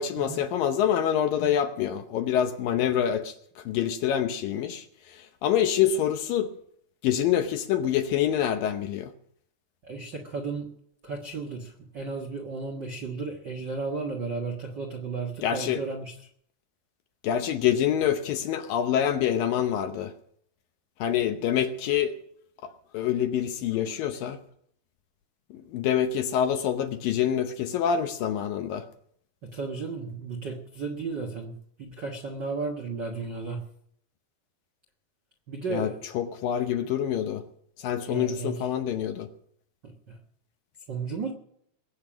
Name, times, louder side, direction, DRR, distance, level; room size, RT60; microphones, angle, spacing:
voice 1, 0.0-6.5 7.0-9.1 15.4-15.8 17.2-20.1 21.0-22.2 22.6-24.4 25.5-28.8 35.7-37.4 37.8-39.3, left 9 dB, 70° left, 7 dB, 2.3 m, -26 dB
voice 2, 9.8-10.7 11.0-16.1 29.5-31.5 31.8-33.6 35.5-36.1 38.1-38.6 39.8-40.2 40.9-41.3, right 4 dB, 75° right, 2 dB, 1.0 m, -34 dB
21.5 x 8.8 x 6.2 m, 0.67 s
omnidirectional pair, 4.7 m